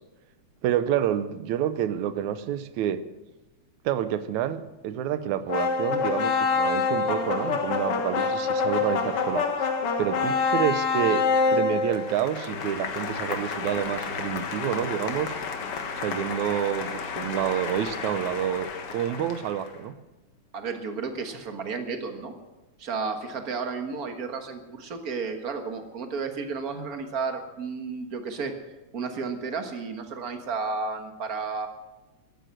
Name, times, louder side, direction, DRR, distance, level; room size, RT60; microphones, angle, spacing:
voice 1, 0.6-3.0 3.9-9.5 10.0-15.4 16.0-20.0, right 10 dB, 90° right, 13 dB, 2.2 m, -28 dB
sound 1, 5.5-19.7, left 4 dB, 55° left, 2.2 m, -28 dB
sound 2, 12.5-20.0, left 2 dB, 40° left, 2.0 m, -45 dB
voice 2, 20.5-22.3 22.8-28.6 28.9-31.7, right 4 dB, 40° right, 6 dB, 1.4 m, -32 dB
13.5 x 11.5 x 7.7 m, 1.1 s
omnidirectional pair, 3.3 m